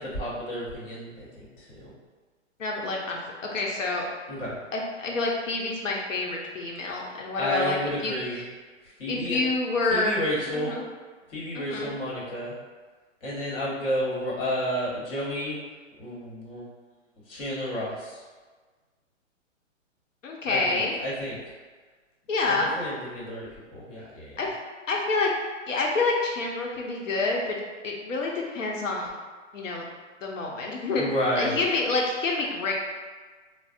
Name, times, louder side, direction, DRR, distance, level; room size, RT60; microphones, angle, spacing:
voice 1, 0.0-1.9 4.3-4.6 7.4-8.4 9.0-9.4 9.9-10.7 11.3-12.5 13.2-15.5 16.0-16.7 17.3-18.2 20.5-21.4 22.4-24.4 30.9-31.6, equal, 45° left, -6 dB, 1.3 m, -31 dB
voice 2, 2.6-3.2 3.5-4.1 4.7-7.8 8.0-8.4 9.1-10.2 10.5-10.8 11.5-11.9 20.2-21.0 22.3-22.8 24.4-24.5 24.9-25.3 25.7-27.6 27.8-29.1 29.5-29.8 30.2-31.0 31.4-32.7, left 3 dB, 80° left, -1 dB, 0.8 m, -27 dB
4.0 x 2.0 x 2.5 m, 1.4 s
hypercardioid pair, 145°, 38 cm